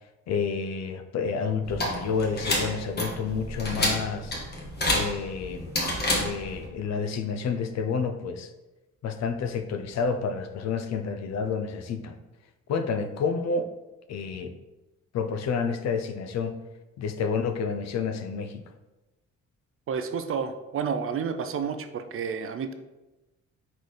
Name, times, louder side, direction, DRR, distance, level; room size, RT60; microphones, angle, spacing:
voice 1, 0.3-4.3 4.9-5.7 6.2-8.5 9.0-12.2 12.7-13.7 14.1-14.6 15.1-16.6 17.0-18.6, left 5 dB, 60° left, 8 dB, 0.5 m, -29 dB
sound 1, 1.7-6.7, left 1 dB, 35° left, 1.3 m, -29 dB
voice 2, 19.9-22.7, right 6 dB, 45° right, 9 dB, 0.4 m, -30 dB
4.1 x 3.9 x 3.2 m, 1.1 s
cardioid pair, 90°, 30 cm